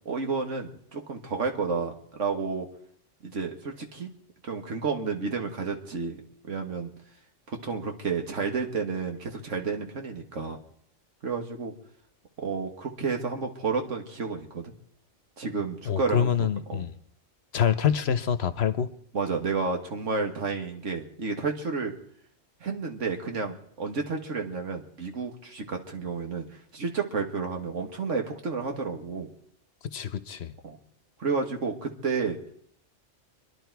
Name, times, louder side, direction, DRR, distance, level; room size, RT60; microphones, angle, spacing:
voice 1, 0.1-2.7 3.2-4.1 4.4-6.9 7.5-10.6 11.2-11.7 12.4-14.7 15.4-16.9 19.1-21.9 22.6-29.3 30.6-30.8 31.2-32.4, right 4 dB, 80° right, 4 dB, 1.9 m, -31 dB
voice 2, 15.9-16.9 17.5-18.9 29.9-30.5, left 8 dB, 60° left, 12 dB, 1.0 m, -26 dB
26.0 x 11.0 x 4.6 m, 0.66 s
omnidirectional pair, 1.3 m